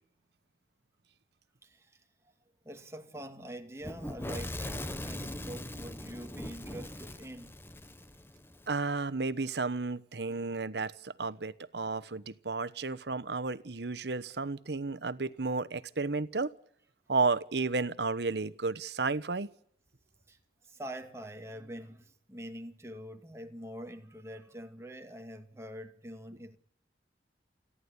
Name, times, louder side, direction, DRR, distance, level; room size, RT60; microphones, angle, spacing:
voice 1, 1.6-2.1 2.6-7.6 10.2-10.4 20.3-26.6, equal, 15° right, 2.2 m, -45 dB
Fire / Explosion, 3.8-8.7, left 1 dB, 15° left, 1.1 m, -40 dB
voice 2, 8.7-16.5 17.1-19.5, right 3 dB, 75° right, 1.1 m, -32 dB
29.0 x 11.5 x 9.8 m
head